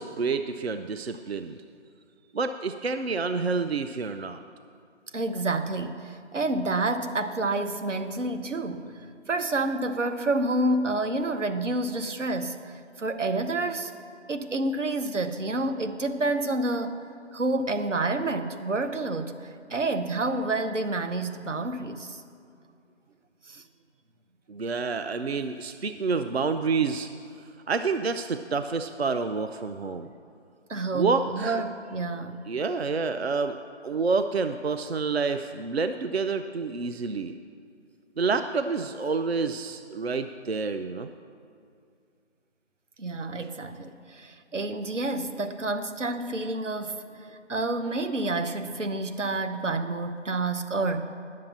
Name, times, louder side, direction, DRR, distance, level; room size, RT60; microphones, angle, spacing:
voice 1, 0.0-1.6 2.3-4.4 24.5-27.1 27.7-30.1 30.9-31.6 32.5-33.6 33.8-37.4 38.2-41.1, right 4 dB, 60° right, 9 dB, 0.5 m, -28 dB
voice 2, 5.1-13.9 14.3-17.0 17.3-22.2 23.5-23.6 30.7-32.4 43.0-47.0 47.5-51.0, right 2 dB, 85° right, 8 dB, 1.0 m, -29 dB
10.5 x 7.5 x 7.3 m, 2.4 s
figure-of-eight pair, 180°, 36 cm